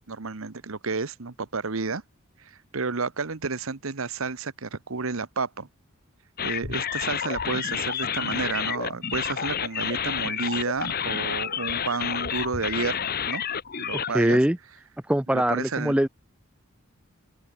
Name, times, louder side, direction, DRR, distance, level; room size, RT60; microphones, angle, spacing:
voice 1, 0.1-2.0 2.7-5.7 6.4-13.0 13.3-13.4 13.8-14.4 15.3-16.0, right 4 dB, 70° right, 1.1 m, -31 dB
sound 1, 6.4-14.1, left 8 dB, 45° left, 1.1 m, -29 dB
voice 2, 14.1-14.6 15.1-16.1, right 1 dB, 5° right, 0.6 m, -22 dB
open air
head